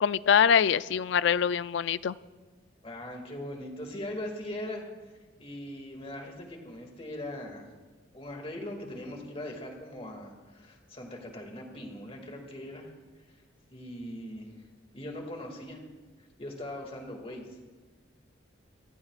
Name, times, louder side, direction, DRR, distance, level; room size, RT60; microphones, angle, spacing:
voice 1, 0.0-2.2, left 7 dB, 65° left, 17 dB, 0.3 m, -24 dB
voice 2, 2.8-4.8 5.4-7.7 8.1-12.9 13.7-14.5 14.9-15.8 16.4-17.6, left 1 dB, 30° left, 2 dB, 2.2 m, -40 dB
29.5 x 14.5 x 2.4 m, 1.3 s
head